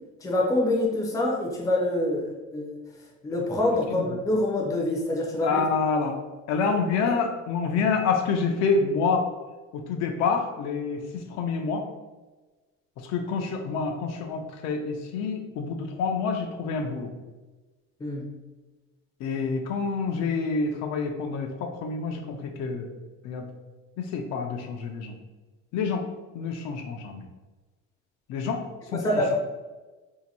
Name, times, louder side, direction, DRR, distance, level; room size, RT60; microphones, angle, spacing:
voice 1, 0.2-2.7 3.2-5.6 18.0-18.2 28.9-29.4, left 1 dB, 10° left, -2 dB, 0.5 m, -25 dB
voice 2, 5.4-6.2 6.5-9.3 9.7-11.0 11.3-11.8 13.0-17.1 19.2-22.9 23.2-23.5 24.0-25.1 25.7-26.0 26.3-27.3 28.3-28.6 28.9-29.0, left 5 dB, 65° left, 4 dB, 0.5 m, -27 dB
2.8 x 2.6 x 4.1 m, 1.2 s
cardioid pair, 170°, 29 cm